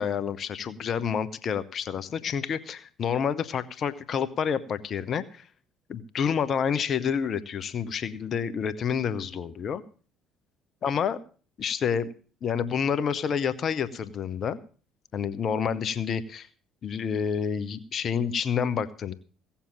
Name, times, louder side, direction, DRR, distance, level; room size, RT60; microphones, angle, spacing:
voice 1, 0.0-5.5 5.9-9.8 10.8-11.2 11.6-12.1 12.4-14.6 15.1-16.5 16.8-19.1, left 7 dB, 50° left, 13 dB, 1.0 m, -28 dB
17.0 x 7.2 x 7.3 m, 0.39 s
hypercardioid pair, 55°, 0 cm